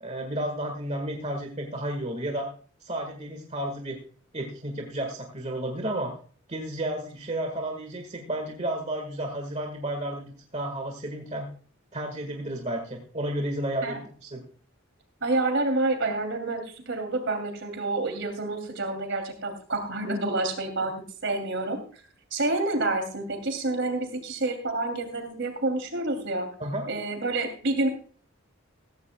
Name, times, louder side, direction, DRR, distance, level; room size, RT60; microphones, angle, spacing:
voice 1, 0.0-2.5 2.8-4.0 4.3-6.1 6.5-11.5 11.9-14.4 26.6-26.9, right 1 dB, 30° right, 3 dB, 1.6 m, -32 dB
voice 2, 15.2-20.9 21.2-22.0 22.3-26.5 26.9-27.9, right 2 dB, 60° right, 6 dB, 2.8 m, -28 dB
15.0 x 15.0 x 2.2 m, 0.42 s
head